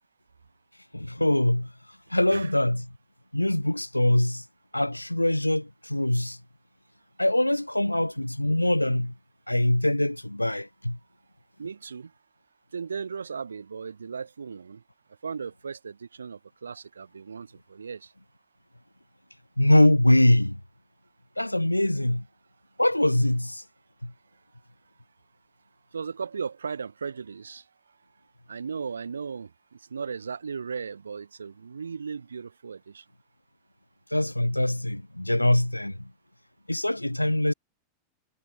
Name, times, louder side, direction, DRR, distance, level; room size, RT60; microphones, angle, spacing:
voice 1, 0.9-1.7 2.1-2.9 3.3-4.4 4.7-6.4 7.2-9.1 9.5-11.0 19.6-20.6 21.4-22.2 22.8-23.6 24.0-24.1 34.1-36.1 36.7-37.5, left 1 dB, 85° left, 2.4 m, -23 dB
voice 2, 11.6-12.1 12.7-14.8 15.2-18.1 25.9-27.6 28.5-33.0, right 6 dB, 75° right, 3.7 m, -36 dB
figure-of-eight pair, 90°, 0 cm